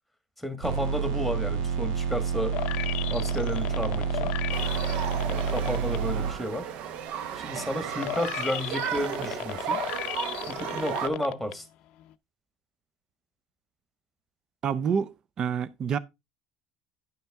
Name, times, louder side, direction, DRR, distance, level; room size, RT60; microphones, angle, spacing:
voice 1, 0.4-2.6 3.1-4.3 5.2-6.7 7.3-9.8 10.5-11.6, equal, ahead, 1.4 m, -32 dB
sound 1, 0.6-6.3, right 6 dB, 85° right, 1.6 m, -29 dB
sound 2, 2.5-6.0 6.4-11.5 12.0-12.1, left 15 dB, 60° left, 0.5 m, -35 dB
sound 3, 4.5-11.1, right 9 dB, 60° right, 0.8 m, -34 dB
voice 2, 14.6-16.0, right 7 dB, 35° right, 0.5 m, -28 dB
10.5 x 5.7 x 3.5 m
cardioid pair, 140°, 2 cm